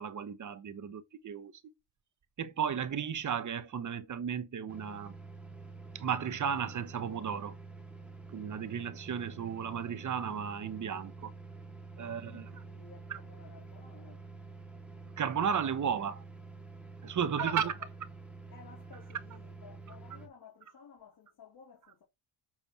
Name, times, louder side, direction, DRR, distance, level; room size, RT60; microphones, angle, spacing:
voice 1, 0.0-1.5 2.4-5.1 5.9-7.6 8.3-11.3 12.0-12.5 13.1-13.2 15.2-16.2 17.0-17.7, right 7 dB, 40° right, 1.1 m, -34 dB
sound 1, 4.7-20.3, right 3 dB, 5° right, 2.3 m, -48 dB
voice 2, 12.0-14.3 17.2-17.7 18.5-22.0, left 7 dB, 50° left, 2.9 m, -53 dB
7.6 x 4.3 x 5.8 m
cardioid pair, 120°, 47 cm